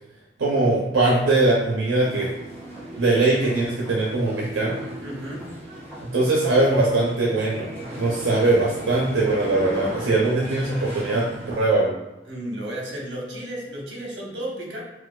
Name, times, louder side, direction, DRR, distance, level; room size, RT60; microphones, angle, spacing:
voice 1, 0.4-2.3 3.0-4.8 6.1-7.7 8.0-11.3 11.6-11.9, right 2 dB, 90° right, -4 dB, 0.6 m, -21 dB
sound 1, 2.0-11.6, right 1 dB, 15° left, 1.0 m, -37 dB
voice 2, 5.0-5.5 12.2-14.8, right 1 dB, 70° right, -2 dB, 1.0 m, -33 dB
4.3 x 2.3 x 2.3 m, 1.0 s
head